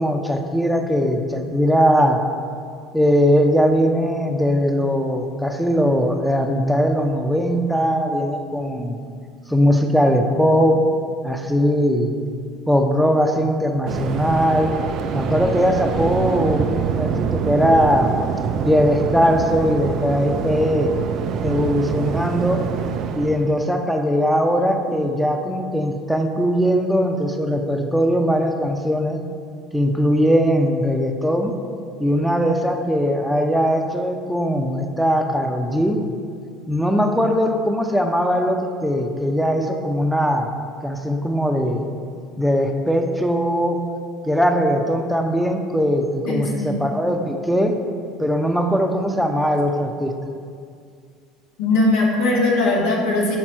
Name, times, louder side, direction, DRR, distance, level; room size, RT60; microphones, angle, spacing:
voice 1, 0.0-2.2 2.9-9.0 9.5-10.8 11.2-12.1 12.7-14.8 15.1-18.1 18.6-20.9 21.4-22.6 23.1-29.2 29.7-31.5 32.0-36.0 36.7-40.5 40.8-41.9 42.4-43.8 44.2-47.8 48.2-50.2, equal, ahead, 4 dB, 0.6 m, -20 dB
Waves surf, 13.9-23.5, right 6 dB, 55° right, 0.3 m, -25 dB
voice 2, 46.2-46.8 51.6-53.4, left 2 dB, 80° left, -4 dB, 1.1 m, -19 dB
6.0 x 3.9 x 4.5 m, 2.2 s
hypercardioid pair, 80°, 0 cm